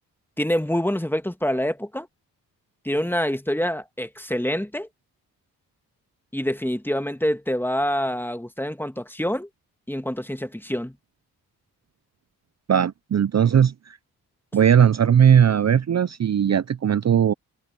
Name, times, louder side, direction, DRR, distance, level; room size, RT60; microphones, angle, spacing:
voice 1, 0.4-2.1 2.8-4.9 6.3-9.5 9.9-10.9, equal, 5° left, 1.8 m, -26 dB
voice 2, 12.7-14.0 14.5-17.3, right 8 dB, 40° right, 0.7 m, -18 dB
supercardioid pair, 45°, 40 cm